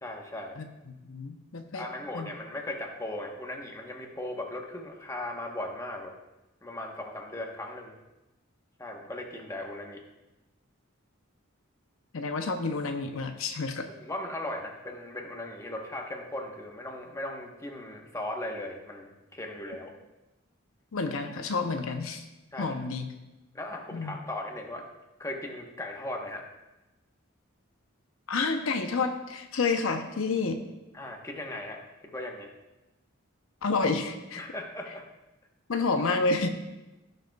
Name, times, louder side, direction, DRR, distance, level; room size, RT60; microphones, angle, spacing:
voice 1, 0.0-0.5 1.7-6.1 6.6-7.9 8.8-10.0 14.0-19.9 22.5-22.7 23.5-24.9 25.2-26.4 30.9-31.8 32.1-32.5 34.4-35.1, left 1 dB, 15° left, 1 dB, 1.0 m, -37 dB
voice 2, 0.6-1.8 2.1-2.3 12.1-13.9 20.9-22.2 22.6-23.1 23.9-24.2 28.3-30.6 33.6-34.4 35.7-36.5, left 4 dB, 75° left, 6 dB, 0.7 m, -29 dB
16.5 x 6.6 x 2.3 m, 1.0 s
head